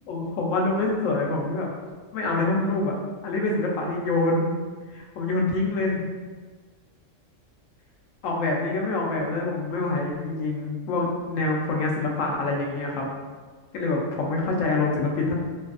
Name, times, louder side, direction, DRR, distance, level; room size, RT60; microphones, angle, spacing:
voice 1, 0.1-1.7 2.1-3.0 3.2-4.5 4.9-6.1 8.2-13.1 13.7-15.3, left 2 dB, 75° left, -1 dB, 1.0 m, -26 dB
3.3 x 2.4 x 2.4 m, 1.4 s
omnidirectional pair, 1.4 m